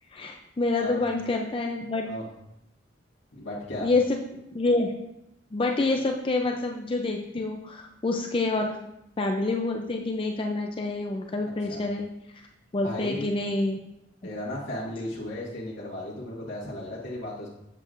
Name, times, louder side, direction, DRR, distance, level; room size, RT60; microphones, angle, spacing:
voice 1, 0.1-2.1 3.8-4.2 4.5-4.9 5.5-8.8 9.2-12.0 12.7-13.8, left 2 dB, 30° left, 2 dB, 0.4 m, -27 dB
voice 2, 3.3-3.9 11.7-11.9 12.8-13.3 14.2-17.5, left 1 dB, 80° left, -7 dB, 1.7 m, -35 dB
7.5 x 7.5 x 2.5 m, 0.84 s
head